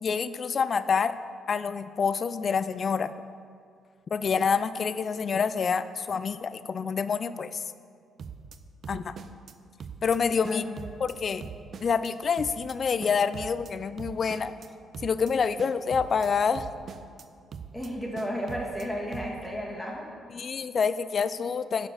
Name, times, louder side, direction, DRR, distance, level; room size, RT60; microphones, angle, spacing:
voice 1, 0.0-1.2 1.5-3.1 4.1-7.6 8.9-9.2 10.0-10.6 11.0-11.4 11.8-14.5 15.0-16.7 20.3-21.9, left 6 dB, 45° left, 13 dB, 0.3 m, -27 dB
sound 1, 8.2-8.6 8.8-9.5 9.8-10.2 10.4-11.1 11.4-12.1 12.4-12.7 13.0-13.7 14.0-14.7 14.9-15.3 15.6-16.3 16.5-17.2 17.5-17.9 18.1-18.8 19.1-19.5, right 6 dB, 55° right, 0.4 m, -42 dB
voice 2, 17.7-20.0, equal, 5° left, -3 dB, 1.7 m, -33 dB
7.3 x 4.9 x 6.5 m, 2.2 s
cardioid pair, 90°, 0 cm